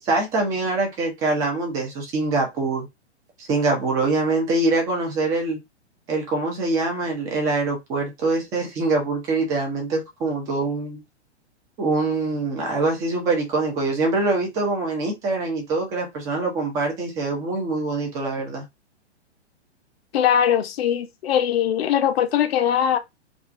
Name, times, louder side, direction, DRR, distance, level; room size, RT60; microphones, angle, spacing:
voice 1, 0.0-2.9 3.4-5.6 6.1-11.0 11.8-18.6, right 3 dB, 10° right, 0.3 m, -24 dB
voice 2, 20.1-23.0, left 9 dB, 60° left, 0.5 m, -21 dB
2.4 x 2.3 x 2.4 m
figure-of-eight pair, 110°, 34 cm